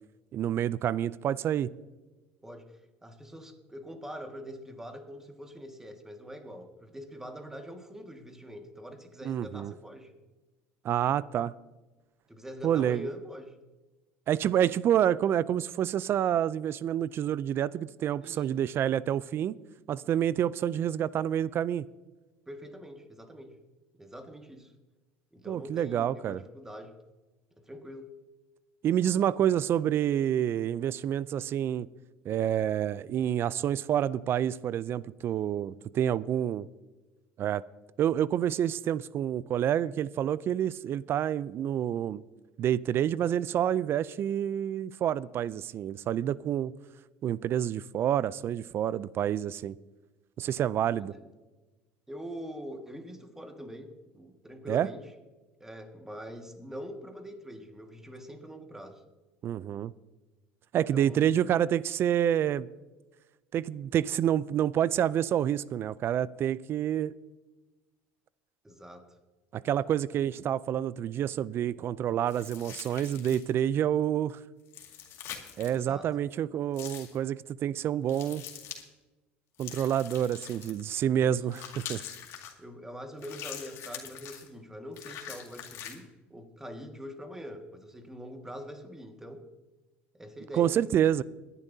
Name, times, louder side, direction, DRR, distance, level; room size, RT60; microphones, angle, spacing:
voice 1, 0.3-1.7 9.3-9.7 10.8-11.5 12.6-13.1 14.3-19.6 19.9-21.8 25.5-26.4 28.8-31.9 32.3-36.7 37.4-37.6 38.0-42.2 42.6-46.7 47.2-49.8 50.4-51.1 54.7-54.9 59.4-59.9 60.7-62.7 63.5-67.1 69.5-74.4 75.6-78.4 79.6-82.0 90.5-91.2, right 10 dB, 45° right, 20 dB, 0.4 m, -28 dB
voice 2, 2.4-10.1 12.3-13.6 18.2-18.5 22.5-23.6 23.9-24.7 25.3-27.0 27.6-28.2 50.9-51.2 52.1-55.1 55.6-59.0 60.9-61.3 68.6-69.1 70.2-70.3 75.6-76.1 81.2-81.4 82.6-89.5 90.1-90.9, equal, 10° right, 5 dB, 1.8 m, -44 dB
sound 1, 72.3-73.6 74.7-75.8 76.7-77.2 78.1-78.8 79.6-80.9 81.5-82.5 83.2-84.5 84.9-86.0, left 9 dB, 60° left, 2.1 m, -43 dB
22.0 x 11.0 x 2.7 m, 1.2 s
supercardioid pair, 95°, 5 cm